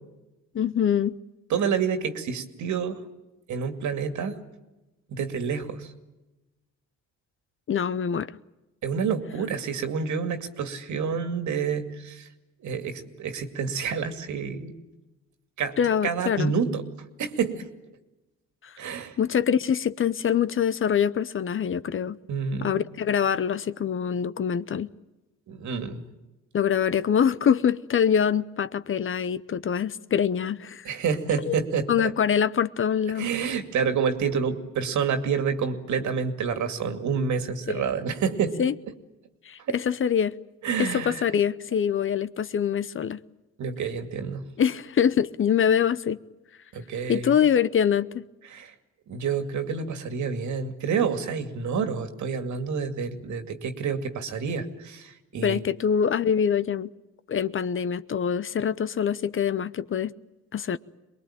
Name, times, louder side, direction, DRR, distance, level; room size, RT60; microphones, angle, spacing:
voice 1, 0.5-1.1 7.7-8.3 15.8-16.5 18.6-18.7 19.2-22.2 22.6-24.9 26.5-30.9 31.5-31.6 31.9-33.3 37.7-37.8 38.6-38.7 39.5-40.3 40.8-43.2 44.6-46.2 47.1-48.2 55.4-56.9 57.3-60.1 60.5-60.8, left 8 dB, 45° left, 0.8 m, -24 dB
voice 2, 1.5-3.0 3.5-4.4 5.1-5.9 8.8-12.3 12.6-14.7 15.6-15.8 16.0-16.8 17.2-17.7 18.8-19.2 22.3-22.8 25.5-26.1 30.8-32.1 33.1-38.6 40.6-41.3 43.6-44.4 46.7-47.4 48.5-48.7 49.1-55.6, right 6 dB, 70° right, 2.5 m, -28 dB
23.0 x 21.0 x 8.9 m
cardioid pair, 90°, 30 cm